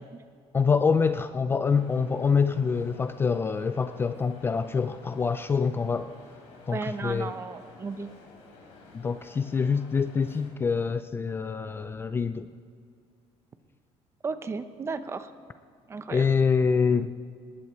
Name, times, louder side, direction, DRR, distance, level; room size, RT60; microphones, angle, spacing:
voice 1, 0.5-6.1 6.7-7.3 8.9-12.5 16.1-17.1, left 5 dB, 20° left, 11 dB, 0.4 m, -25 dB
sound 1, 1.7-10.5, left 3 dB, 85° left, 3.4 m, -52 dB
voice 2, 6.7-8.1 14.2-15.3 15.9-16.3, right 4 dB, 25° right, 11 dB, 0.7 m, -34 dB
19.5 x 19.5 x 3.1 m, 2.3 s
cardioid pair, 155°, 11 cm